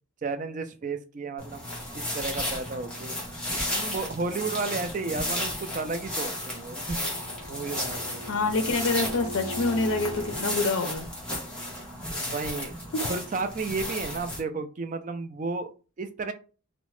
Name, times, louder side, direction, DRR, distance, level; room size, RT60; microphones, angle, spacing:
voice 1, 0.2-1.7 1.9-3.2 3.7-7.1 7.5-8.2 12.2-12.8 13.1-16.3, right 4 dB, 40° right, 8 dB, 0.3 m, -33 dB
sound 1, 1.4-14.4, left 1 dB, 5° left, 0.8 m, -33 dB
Bowed string instrument, 6.9-10.5, equal, 85° right, 1.0 m, -40 dB
voice 2, 8.3-11.1, left 3 dB, 75° left, 7 dB, 0.5 m, -26 dB
2.8 x 2.1 x 3.0 m, 0.35 s
head